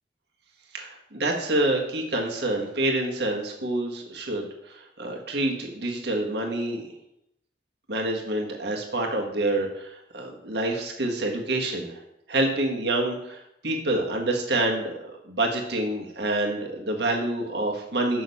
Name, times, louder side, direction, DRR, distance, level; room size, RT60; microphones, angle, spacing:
voice 1, 0.7-6.8 7.9-12.0 12.3-18.2, right 2 dB, 65° right, 1 dB, 1.6 m, -27 dB
6.4 x 6.3 x 5.5 m, 0.80 s
head